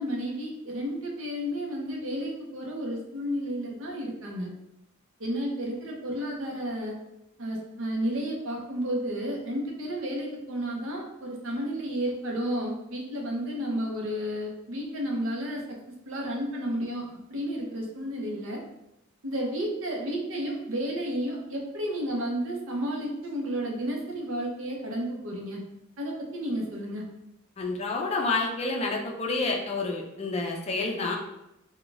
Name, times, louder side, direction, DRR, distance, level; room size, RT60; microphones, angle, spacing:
voice 1, 0.0-4.5 5.2-6.9 7.4-15.8 16.1-18.6 19.2-25.6 26.0-27.0, equal, 65° right, 0 dB, 0.6 m, -32 dB
voice 2, 27.6-31.2, left 3 dB, 30° left, 0 dB, 0.4 m, -29 dB
2.4 x 2.2 x 3.8 m, 0.87 s
head